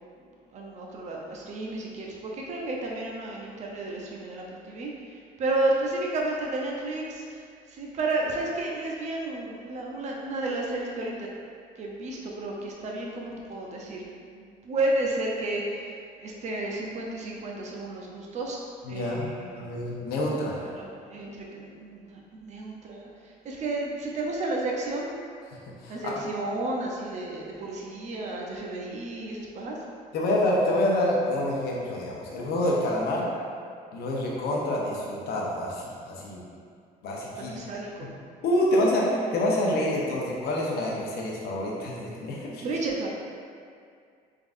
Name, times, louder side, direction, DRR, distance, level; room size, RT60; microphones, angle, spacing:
voice 1, 0.5-11.3 11.8-18.6 18.9-19.9 20.7-25.1 25.9-29.8 37.5-38.1 42.6-43.1, right 2 dB, 45° right, -2 dB, 0.6 m, -32 dB
voice 2, 18.8-20.6 25.8-26.1 30.1-33.2 33.9-36.4 37.0-37.6 38.0-38.1 38.4-42.6, left 1 dB, 70° left, -3 dB, 0.8 m, -27 dB
3.7 x 3.6 x 2.5 m, 2.2 s
cardioid pair, 110°, 17 cm